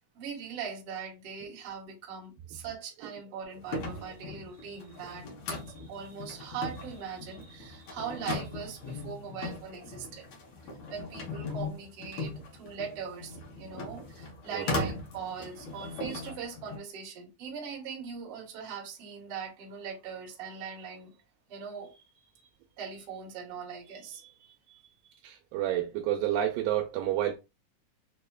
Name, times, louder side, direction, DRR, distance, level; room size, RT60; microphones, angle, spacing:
voice 1, 0.2-10.3 10.9-21.1 21.5-22.5 22.8-25.1, right 6 dB, 55° right, 1.8 m, -41 dB
sound 1, 3.6-16.8, left 3 dB, 75° left, 1.3 m, -39 dB
voice 2, 25.2-27.4, right 12 dB, 85° right, 2.2 m, -29 dB
5.4 x 2.1 x 2.2 m
omnidirectional pair, 3.8 m